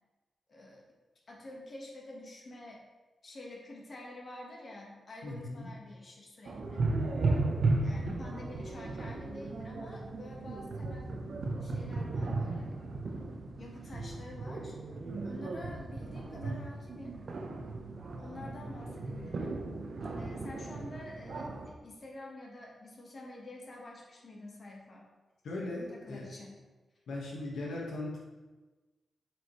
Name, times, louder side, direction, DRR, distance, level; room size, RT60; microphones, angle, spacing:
voice 1, 0.5-0.9 1.3-2.8 3.2-6.9 7.8-11.2 11.6-12.8 13.6-14.7 15.2-17.2 18.2-19.6 20.2-25.1 25.9-26.6, left 1 dB, 45° left, -1 dB, 1.4 m, -48 dB
voice 2, 5.2-5.7 18.4-18.5 25.4-26.2 27.1-28.2, left 2 dB, 85° left, -3 dB, 1.5 m, -38 dB
sound 1, 6.4-21.7, right 3 dB, 60° right, 0.8 m, -35 dB
7.8 x 4.9 x 3.1 m, 1.2 s
cardioid pair, 95°, 0 cm